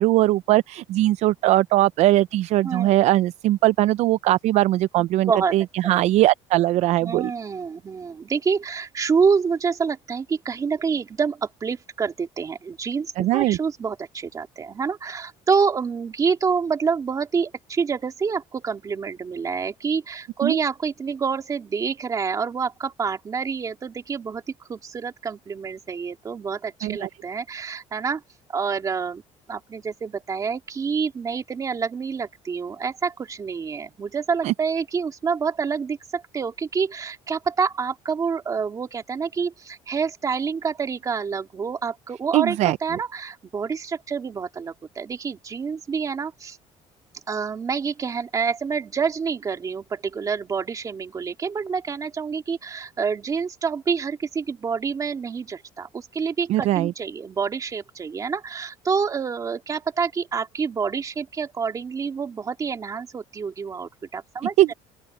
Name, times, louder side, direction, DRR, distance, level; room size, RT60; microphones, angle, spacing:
voice 1, 0.0-7.3 13.2-13.6 20.4-20.6 26.8-27.1 34.4-34.5 42.3-42.8 56.5-56.9 64.6-64.7, right 15 dB, 60° right, 0.4 m, -20 dB
voice 2, 2.6-2.9 5.3-5.6 7.0-24.4 24.7-28.2 28.5-29.2 29.5-46.6 47.3-64.7, right 5 dB, 25° right, 2.5 m, -27 dB
open air
cardioid pair, 155°, 13 cm